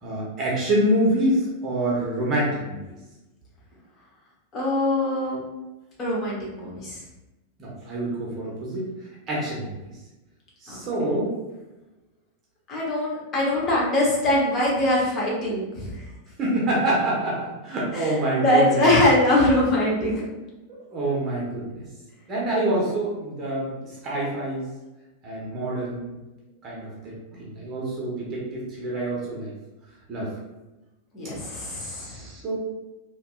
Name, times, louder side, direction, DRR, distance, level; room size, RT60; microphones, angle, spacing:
voice 1, 0.0-2.8 7.6-8.9 9.3-9.7 10.6-11.3 16.4-18.9 20.1-20.2 20.7-21.8 22.3-23.8 24.0-24.7 25.2-26.2 26.6-29.5 30.1-30.3 31.8-32.6, right 1 dB, 30° right, -5 dB, 0.9 m, -26 dB
voice 2, 4.5-5.4 6.0-7.0 10.7-11.2 12.7-16.0 17.9-20.3 31.1-32.3, left 1 dB, 30° left, -4 dB, 1.0 m, -23 dB
2.8 x 2.5 x 2.4 m, 1.0 s
figure-of-eight pair, 90°, 0 cm